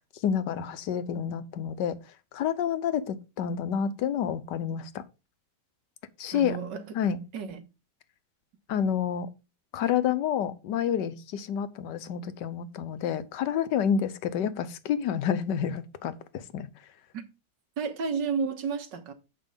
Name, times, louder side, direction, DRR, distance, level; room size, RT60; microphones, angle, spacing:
voice 1, 0.2-2.0 2.3-5.0 6.2-6.6 6.9-7.2 8.7-9.3 9.7-16.7, left 8 dB, 80° left, 1.4 m, -29 dB
voice 2, 6.3-7.0 7.3-7.7 17.1-17.2 17.8-19.1, right 5 dB, 80° right, 1.9 m, -32 dB
7.7 x 5.3 x 5.3 m
omnidirectional pair, 1.9 m